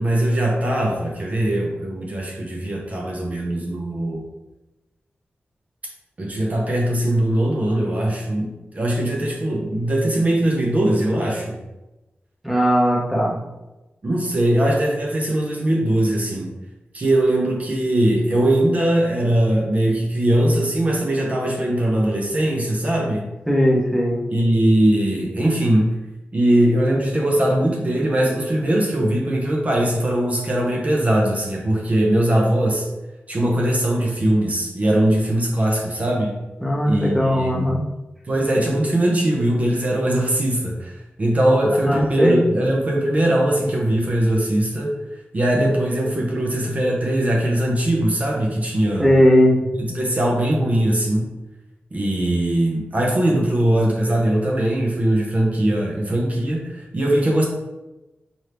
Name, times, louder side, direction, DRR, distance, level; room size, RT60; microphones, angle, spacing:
voice 1, 0.0-4.2 6.2-11.6 14.0-16.5 16.9-23.2 24.3-26.0 26.3-32.9 33.3-36.3 36.9-37.7 38.2-44.9 45.3-49.1 49.8-51.3 51.9-57.5, right 1 dB, 35° right, -1 dB, 0.6 m, -20 dB
voice 2, 12.4-13.4 23.5-24.2 36.6-37.8 41.9-42.4 49.0-49.6, equal, ahead, -3 dB, 0.7 m, -18 dB
4.3 x 2.6 x 3.3 m, 1.0 s
wide cardioid pair, 140°, 4 cm